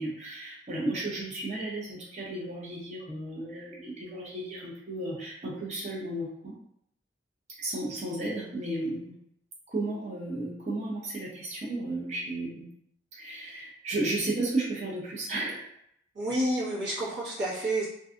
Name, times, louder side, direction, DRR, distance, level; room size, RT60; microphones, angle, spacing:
voice 1, 0.0-6.6 7.6-9.1 9.7-12.7 13.1-15.7, right 2 dB, 40° right, -5 dB, 0.6 m, -33 dB
voice 2, 16.1-17.9, right 1 dB, 75° right, -8 dB, 1.2 m, -29 dB
2.5 x 2.3 x 2.5 m, 0.72 s
head